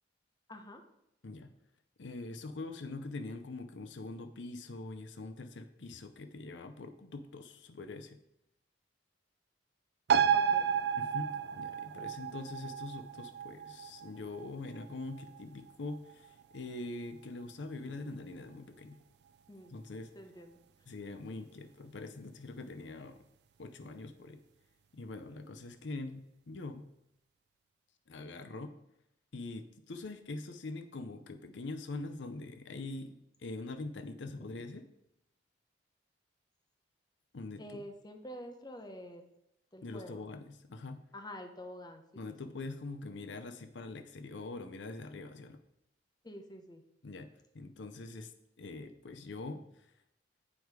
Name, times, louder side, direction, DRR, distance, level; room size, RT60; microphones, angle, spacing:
voice 1, 0.5-0.8 10.3-10.7 19.5-19.7 20.1-20.6 34.2-34.6 37.6-39.3 39.7-40.2 41.1-42.0 46.2-46.8, equal, 20° left, 5 dB, 0.8 m, -47 dB
voice 2, 2.0-8.2 11.0-19.0 19.7-20.1 20.9-23.2 23.6-24.4 24.9-26.8 28.1-28.7 29.3-34.9 37.3-37.9 39.8-41.0 42.1-45.6 47.0-47.3 47.5-48.3 48.6-49.7, left 2 dB, 80° left, 9 dB, 0.7 m, -43 dB
sound 1, 10.1-17.1 17.4-17.5, right 8 dB, 60° right, 0.4 m, -33 dB
8.6 x 4.7 x 4.8 m, 0.81 s
head